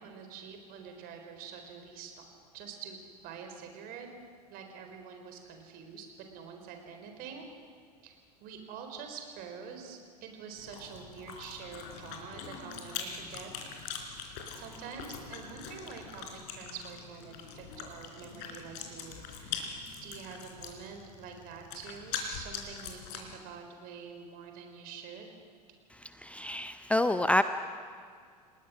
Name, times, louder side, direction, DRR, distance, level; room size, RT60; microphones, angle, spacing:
voice 1, 0.0-2.1 2.5-4.1 4.5-7.5 8.0-8.2 8.4-13.5 14.5-25.3, right 6 dB, 45° right, 4 dB, 4.3 m, -46 dB
Chewing mastication, 10.6-23.4, left 6 dB, 50° left, 4.1 m, -42 dB
voice 2, 25.9-27.4, left 1 dB, 5° left, 11 dB, 0.7 m, -28 dB
29.0 x 19.5 x 6.3 m, 2.1 s
figure-of-eight pair, 80°, 21 cm